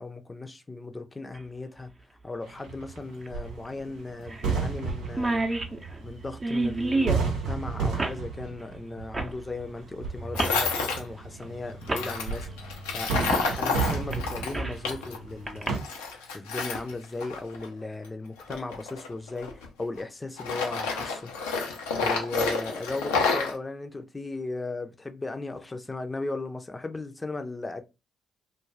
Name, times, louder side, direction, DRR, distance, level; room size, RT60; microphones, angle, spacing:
voice 1, 0.0-1.9 2.2-5.4 6.0-12.5 12.9-15.8 16.3-21.3 21.9-27.8, left 3 dB, 25° left, 0.6 m, -36 dB
sound 1, 1.3-1.4 3.2-3.3 3.7-3.8 4.3-4.5 4.8-4.9 5.1-7.3 8.0-8.2 9.1-9.4 10.3-10.6 11.4-11.5 11.9-12.1 13.3-13.5 13.9-14.8 15.5-15.7, right 2 dB, 30° right, 0.7 m, -29 dB
sound 2, 2.4-15.8, right 5 dB, 80° right, 0.8 m, -33 dB
Tools, 10.4-11.0 11.9-15.2 15.5-17.7 18.4-20.0 20.4-23.5, left 4 dB, 85° left, 0.6 m, -29 dB
2.4 x 2.2 x 3.2 m
hypercardioid pair, 45°, 0 cm